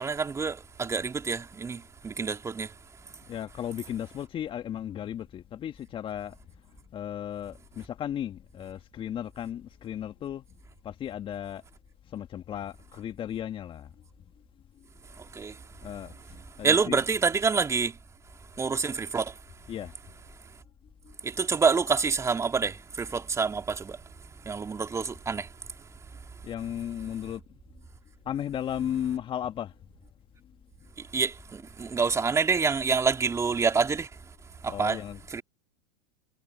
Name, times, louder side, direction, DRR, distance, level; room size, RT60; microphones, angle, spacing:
voice 1, 0.0-2.7 15.2-15.6 16.6-18.0 18.6-19.3 21.2-24.0 24.5-25.5 31.1-34.1 34.6-35.0 35.3-35.4, right 5 dB, 15° right, 3.7 m, -27 dB
voice 2, 3.3-6.4 6.9-10.4 10.8-11.6 12.1-13.9 15.8-17.1 19.7-19.9 21.0-21.2 26.4-27.4 28.2-29.7 34.7-35.2, left 10 dB, 30° left, 1.6 m, -35 dB
hypercardioid pair, 100°, 19 cm